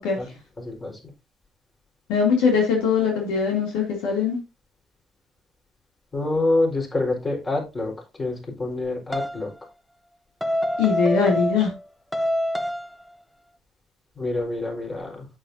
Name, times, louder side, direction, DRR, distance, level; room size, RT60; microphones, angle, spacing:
voice 1, 0.6-1.0 6.1-7.9 8.2-9.5 14.2-15.3, left 2 dB, 30° left, 4.9 m, -26 dB
voice 2, 2.1-4.4 10.8-11.7, left 5 dB, 85° left, 2.9 m, -21 dB
sound 1, 9.1-9.4 10.4-11.8 12.1-13.0, equal, 5° left, 0.9 m, -26 dB
8.6 x 8.3 x 2.8 m
supercardioid pair, 65°, 0 cm